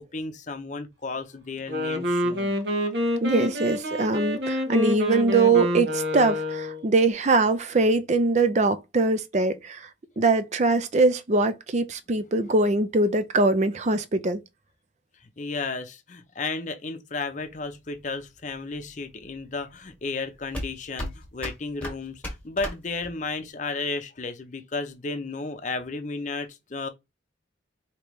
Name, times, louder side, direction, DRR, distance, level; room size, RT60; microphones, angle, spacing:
voice 1, 0.0-2.5 15.4-26.9, left 3 dB, 40° left, 0.6 m, -33 dB
Wind instrument woodwind instrument, 1.6-6.9, left 1 dB, 65° right, 1.0 m, -27 dB
voice 2, 3.2-9.9 10.2-14.4, right 3 dB, 40° right, 0.5 m, -22 dB
sound 1, 17.5-23.4, left 1 dB, 10° left, 1.5 m, -37 dB
5.0 x 2.9 x 3.1 m
head